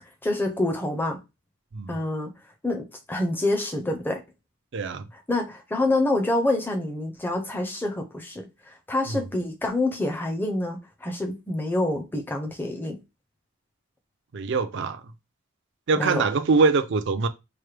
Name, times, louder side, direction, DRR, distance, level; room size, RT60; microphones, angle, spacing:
voice 1, 0.2-1.2 1.9-2.3 2.6-4.2 5.3-13.0 16.0-16.3, left 2 dB, 10° left, 0.5 m, -27 dB
voice 2, 4.7-5.1 9.1-9.2 14.3-15.0 15.9-17.3, right 4 dB, 55° right, 0.4 m, -23 dB
4.5 x 2.1 x 3.2 m
head